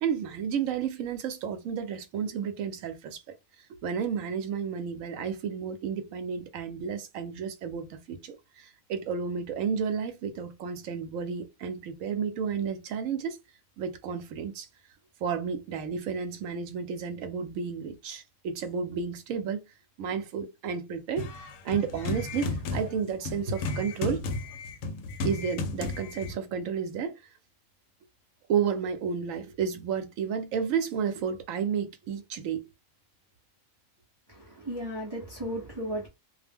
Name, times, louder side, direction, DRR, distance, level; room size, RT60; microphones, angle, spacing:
voice 1, 0.0-3.2 3.8-13.4 13.8-14.7 15.2-19.6 20.0-21.3 21.6-24.3 25.2-27.1 28.5-32.7, right 7 dB, 80° right, 1.0 m, -31 dB
sound 1, 21.2-26.4, left 3 dB, 75° left, 0.9 m, -34 dB
voice 2, 34.3-36.1, equal, 30° right, 0.5 m, -35 dB
2.4 x 2.1 x 3.3 m
omnidirectional pair, 1.4 m